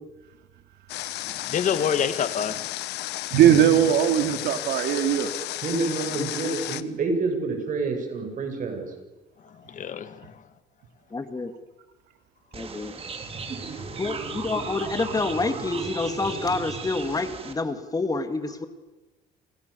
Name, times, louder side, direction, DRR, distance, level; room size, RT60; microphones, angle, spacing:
Water, 0.9-6.8, left 16 dB, 85° left, 1.3 m, -33 dB
voice 1, 1.3-2.7 9.4-10.4 13.8-14.0, left 7 dB, 50° left, 11 dB, 1.9 m, -28 dB
voice 2, 3.3-5.3, right 10 dB, 80° right, 7 dB, 2.7 m, -19 dB
voice 3, 5.6-8.9, right 3 dB, 50° right, 5 dB, 7.9 m, -28 dB
voice 4, 11.1-11.5 12.5-12.9 14.0-18.6, left 3 dB, 20° left, 8 dB, 2.3 m, -28 dB
sound 1, 12.5-17.5, right 4 dB, 35° right, 3.6 m, -35 dB
28.5 x 28.5 x 7.1 m, 1.1 s
cardioid pair, 110°, 17 cm